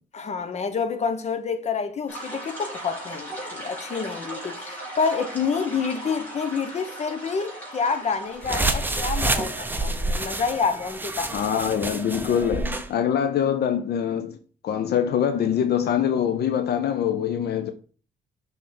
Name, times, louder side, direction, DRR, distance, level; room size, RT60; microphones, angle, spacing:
voice 1, 0.1-11.4, left 5 dB, 40° left, 0.9 m, -28 dB
sound 1, 2.1-10.4, right 1 dB, 10° left, 3.0 m, -38 dB
sound 2, 8.4-12.9, right 2 dB, 10° right, 0.7 m, -28 dB
voice 2, 11.3-14.4 14.6-17.7, left 8 dB, 70° left, 0.6 m, -24 dB
6.3 x 3.5 x 4.3 m
cardioid pair, 100°, 17 cm